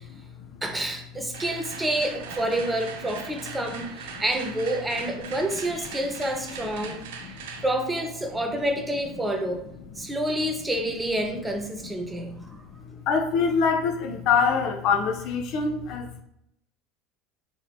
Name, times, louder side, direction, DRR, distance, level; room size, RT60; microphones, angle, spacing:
voice 1, 0.1-0.6 4.2-4.3 6.8-6.9 7.2-7.6 10.0-10.1 11.8-12.6 12.8-16.2, left 5 dB, 55° left, 5 dB, 0.4 m, -26 dB
voice 2, 0.6-7.1 7.6-9.6 10.0-12.6, right 1 dB, 10° right, 3 dB, 0.6 m, -28 dB
sound 1, 1.3-9.3, right 6 dB, 70° right, 0.4 m, -41 dB
3.5 x 2.8 x 2.3 m, 0.74 s
hypercardioid pair, 70°, 0 cm